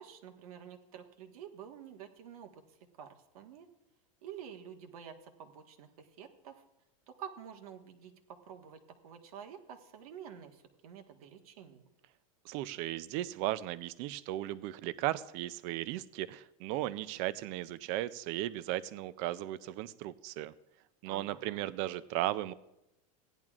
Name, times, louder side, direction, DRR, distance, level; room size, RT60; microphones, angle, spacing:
voice 1, 0.0-2.6 2.9-3.7 4.2-6.6 7.1-11.9 21.0-21.7, right 8 dB, 80° right, 4 dB, 1.4 m, -49 dB
voice 2, 12.5-20.5 21.0-22.5, right 15 dB, 35° right, 16 dB, 0.4 m, -36 dB
17.0 x 10.5 x 2.4 m, 0.90 s
supercardioid pair, 170°, 18 cm